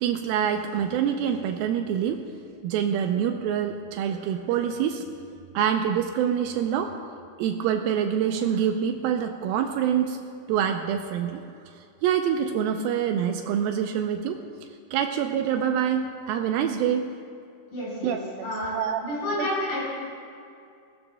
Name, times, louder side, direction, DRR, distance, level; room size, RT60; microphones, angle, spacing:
voice 1, 0.0-2.2 2.6-5.1 5.5-7.0 7.4-10.2 10.5-11.4 12.0-14.4 14.9-17.1 18.0-18.2 18.7-19.0 19.4-19.5, right 8 dB, 85° right, 5 dB, 2.4 m, -25 dB
voice 2, 17.7-18.2 18.4-18.7 19.0-19.8, left 1 dB, 85° left, -7 dB, 5.8 m, -29 dB
20.5 x 17.0 x 2.2 m, 2.4 s
omnidirectional pair, 4.3 m